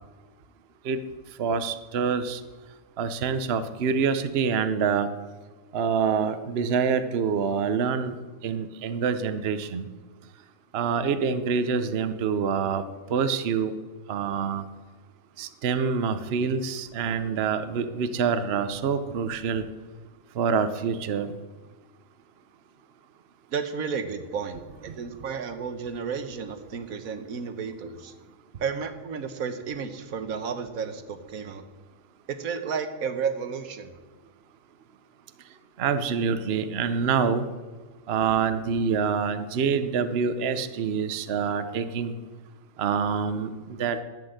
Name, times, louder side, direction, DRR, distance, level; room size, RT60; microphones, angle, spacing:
voice 1, 1.4-2.4 3.0-5.1 5.7-8.2 8.4-9.9 10.7-12.8 13.1-13.7 14.1-14.6 15.4-19.7 20.4-21.3 35.8-37.4 38.1-42.1 42.8-44.0, right 6 dB, 50° right, 11 dB, 0.9 m, -26 dB
voice 2, 23.5-28.1 28.6-31.6 32.3-33.9, right 6 dB, 75° right, 9 dB, 1.4 m, -32 dB
11.5 x 9.0 x 7.8 m, 1.3 s
omnidirectional pair, 1.5 m